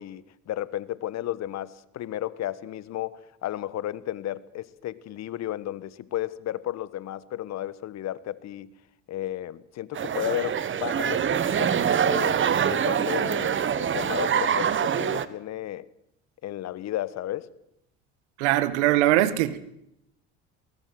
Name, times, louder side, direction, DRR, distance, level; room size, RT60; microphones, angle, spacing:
voice 1, 0.0-8.7 9.1-12.4 12.7-15.9 16.4-17.5, left 13 dB, 50° left, 18 dB, 1.3 m, -33 dB
sound 1, 9.9-15.3, right 8 dB, 35° right, 1.5 m, -25 dB
voice 2, 18.4-19.6, right 14 dB, 80° right, 14 dB, 1.8 m, -21 dB
21.0 x 18.5 x 7.9 m, 0.78 s
hypercardioid pair, 80°, 34 cm